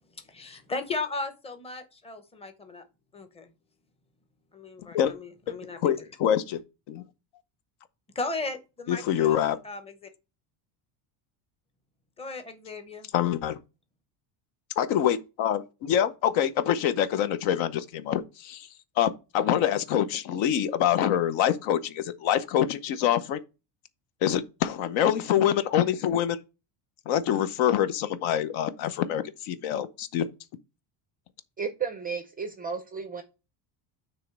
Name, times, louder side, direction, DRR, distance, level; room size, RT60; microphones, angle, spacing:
voice 1, 0.2-2.8 3.1-3.5 4.5-6.1 8.1-10.1 12.2-13.1, left 3 dB, 10° left, 0.8 m, -36 dB
voice 2, 5.8-6.6 6.9-7.0 8.9-9.6 13.1-13.6 14.8-18.7 19.0-23.4 24.2-26.4 27.1-30.3, left 10 dB, 65° left, 0.9 m, -25 dB
voice 3, 31.6-33.2, right 6 dB, 20° right, 0.4 m, -33 dB
7.7 x 3.2 x 6.0 m
cardioid pair, 165°, 49 cm